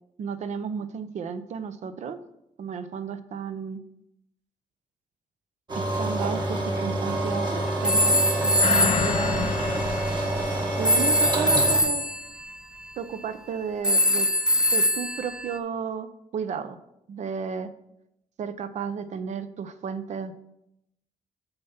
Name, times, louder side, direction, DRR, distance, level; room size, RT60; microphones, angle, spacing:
voice 1, 0.2-2.2 2.6-3.8 5.8-9.8 10.8-12.0 13.0-14.3 14.7-16.8 17.1-17.7 18.4-20.3, right 6 dB, 65° right, 12 dB, 0.6 m, -33 dB
sound 1, 5.7-11.8, right 1 dB, 35° right, 1.6 m, -27 dB
sound 2, 7.8-10.1 10.8-12.3 13.8-15.6, left 1 dB, 5° right, 0.5 m, -23 dB
sound 3, 8.6-11.5 11.9-12.0, left 8 dB, 50° left, 0.4 m, -30 dB
6.7 x 5.6 x 5.7 m, 0.84 s
cardioid pair, 130°, 13 cm